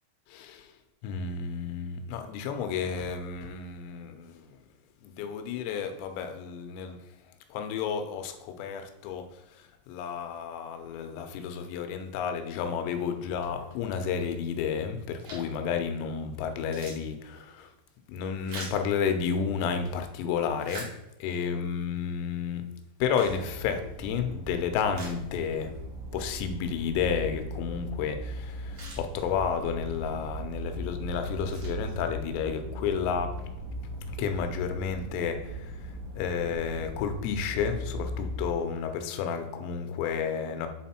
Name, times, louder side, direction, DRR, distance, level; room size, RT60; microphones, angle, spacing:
voice 1, 0.3-0.7 1.0-4.6 5.0-7.0 7.5-9.3 9.5-17.7 18.1-20.9 21.2-22.6 23.0-25.8 26.1-33.3 34.1-40.7, left 6 dB, 85° left, 7 dB, 3.3 m, -31 dB
sound 1, 15.2-15.6 16.1-16.2 16.5-19.7 20.2-21.5 22.0-22.1 22.8-24.1 24.5-24.6 24.9-25.8 26.1-26.2 28.2-28.3 28.5-29.7 30.3-30.6 31.1-32.4, right 2 dB, 50° right, 3.1 m, -46 dB
sound 2, 23.2-38.4, equal, 85° right, 2.3 m, -39 dB
8.3 x 3.8 x 4.3 m, 0.88 s
omnidirectional pair, 5.8 m